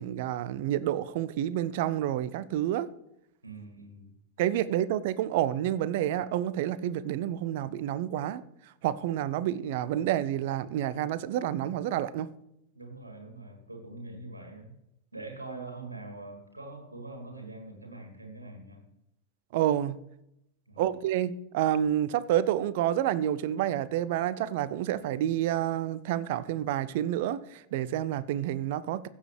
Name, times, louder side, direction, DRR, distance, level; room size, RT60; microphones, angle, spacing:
voice 1, 0.0-2.9 4.4-8.4 8.8-12.3 19.5-20.0 20.8-29.1, right 12 dB, 50° right, 0.5 m, -29 dB
voice 2, 3.4-4.1 12.7-14.7 15.1-18.8 20.7-20.8, right 2 dB, 80° right, 2.2 m, -43 dB
16.0 x 7.2 x 3.3 m
figure-of-eight pair, 90°, 0 cm